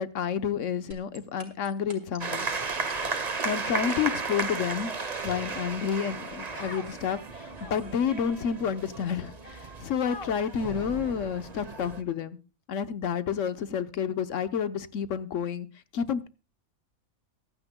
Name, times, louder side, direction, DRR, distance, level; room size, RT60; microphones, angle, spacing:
voice 1, 0.0-2.5 3.4-12.4 12.7-15.7 15.9-16.3, left 7 dB, 65° left, 12 dB, 1.2 m, -30 dB
sound 1, 0.9-4.7, right 3 dB, 65° right, 3.5 m, -44 dB
sound 2, 2.2-12.0, right 4 dB, 35° right, 1.0 m, -35 dB
Human voice, 2.9-3.5 4.2-4.7 5.2-5.8 6.5-6.9 7.5-8.0 8.7-8.8 10.0-10.6, left 3 dB, 45° left, 2.0 m, -44 dB
23.0 x 9.8 x 2.2 m, 0.31 s
omnidirectional pair, 1.5 m